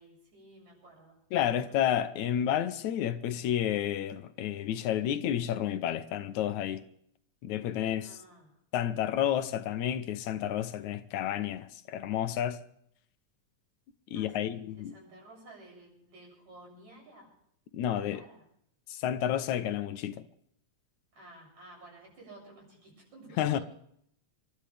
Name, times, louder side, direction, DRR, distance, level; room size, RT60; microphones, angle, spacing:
voice 1, 0.0-2.0 2.2-2.4 7.7-8.6 14.1-17.3 17.8-18.4 21.1-23.6, right 2 dB, 70° right, 9.2 m, -53 dB
voice 2, 1.3-6.8 7.4-8.2 8.7-12.6 14.1-14.9 17.7-18.2 18.9-20.2 23.4-23.6, left 10 dB, 80° left, 2.2 m, -30 dB
29.0 x 13.0 x 3.4 m
omnidirectional pair, 3.4 m